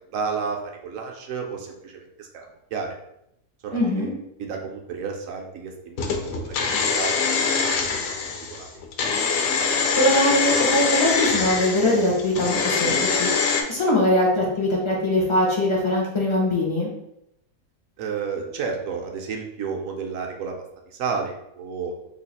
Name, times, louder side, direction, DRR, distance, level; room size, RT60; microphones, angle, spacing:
voice 1, 0.1-3.0 3.6-7.1 7.6-8.0 8.5-8.7 18.0-20.5 20.9-22.0, right 5 dB, 65° right, 2 dB, 0.9 m, -32 dB
voice 2, 3.7-4.1 10.0-13.3 13.7-16.9, left 1 dB, 45° left, -3 dB, 0.4 m, -21 dB
sound 1, 6.0-13.6, left 5 dB, 70° left, 0.9 m, -24 dB
3.1 x 2.4 x 4.0 m, 0.81 s
omnidirectional pair, 1.7 m